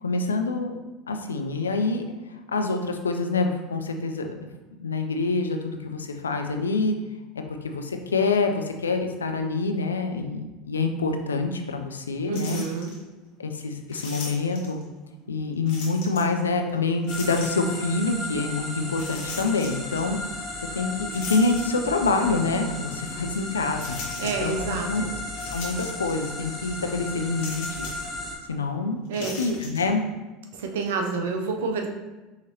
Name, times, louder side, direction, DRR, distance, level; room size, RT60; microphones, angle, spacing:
voice 1, 0.0-0.7 1.1-2.0 2.5-4.3 4.8-7.0 7.6-12.6 13.4-14.8 15.3-20.2 20.7-24.0 24.4-24.6 24.9-25.0 25.5-27.9 28.5-29.0 29.4-30.0, left 3 dB, 90° left, 5 dB, 0.4 m, -26 dB
sound 1, 12.3-13.0 13.9-14.8 15.7-16.4 17.0-17.8 18.9-20.0 21.1-22.2 22.7-22.8 23.8-24.6 25.3-26.3 26.5-26.7 27.4-28.1 29.1-29.8, left 3 dB, 65° left, 1.4 m, -38 dB
voice 2, 12.3-12.9 24.2-25.1 29.1-29.4 30.5-31.9, right 4 dB, 75° right, 3 dB, 0.6 m, -29 dB
sound 2, 17.1-28.3, left 2 dB, 30° left, 1.3 m, -35 dB
5.6 x 3.1 x 2.8 m, 1.1 s
hypercardioid pair, 80°, 0 cm